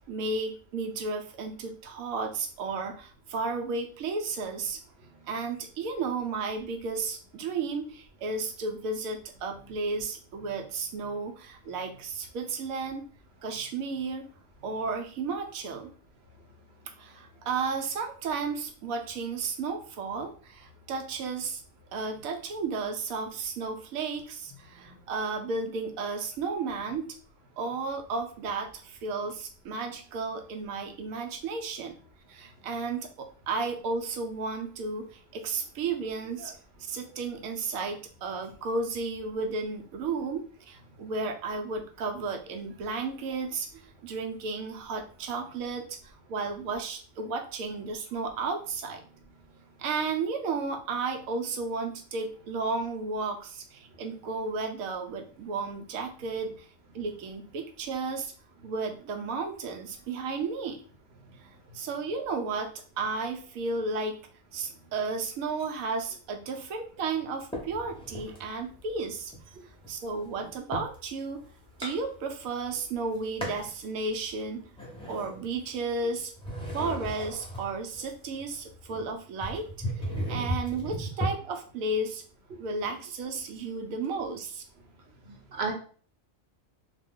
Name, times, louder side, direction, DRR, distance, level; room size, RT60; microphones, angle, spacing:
voice 1, 0.1-4.8 5.3-13.1 13.4-14.3 14.6-15.9 17.0-21.6 21.9-27.2 27.6-31.9 32.3-36.6 36.9-49.0 49.8-56.7 56.9-58.3 58.6-60.8 61.7-64.2 64.5-69.6 69.9-71.4 71.8-74.7 75.1-76.3 76.7-79.7 80.0-82.2 82.6-84.6, right 4 dB, 90° right, 4 dB, 1.0 m, -33 dB
sound 1, 67.5-68.4 68.9-71.0 71.4-72.7 72.9-73.8 74.3-76.0 76.3-81.3, equal, 5° left, 0.5 m, -36 dB
voice 2, 85.3-85.7, right 4 dB, 55° right, 1 dB, 0.9 m, -33 dB
2.4 x 2.2 x 3.5 m, 0.42 s
omnidirectional pair, 1.4 m